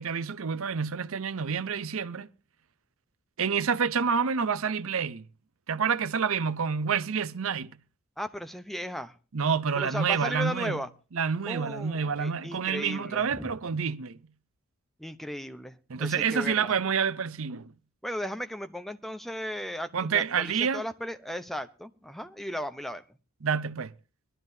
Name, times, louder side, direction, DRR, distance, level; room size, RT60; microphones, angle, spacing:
voice 1, 0.0-2.3 3.4-5.3 5.7-7.7 9.3-10.8 11.1-14.2 15.9-17.7 19.9-20.8 23.4-23.9, right 6 dB, 65° right, 0.6 m, -28 dB
voice 2, 8.2-9.1 9.8-10.9 11.5-13.5 15.0-16.7 18.0-23.0, equal, ahead, 0.7 m, -36 dB
21.5 x 12.5 x 2.7 m
head